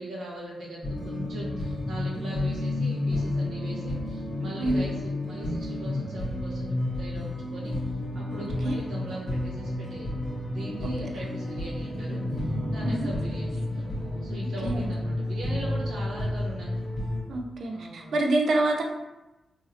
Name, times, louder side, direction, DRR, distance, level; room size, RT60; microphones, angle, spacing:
voice 1, 0.0-7.7 8.1-10.2 10.4-12.4 12.7-16.7 17.7-18.2, right 2 dB, 85° right, -5 dB, 0.9 m, -40 dB
sound 1, 0.8-17.2, left 1 dB, 30° left, 1.1 m, -31 dB
voice 2, 8.4-8.8 10.8-11.1 12.8-13.1 14.6-14.8 17.3-18.8, right 2 dB, 70° right, 2 dB, 0.4 m, -27 dB
3.1 x 2.7 x 2.6 m, 1.0 s
cardioid pair, 95°, 0 cm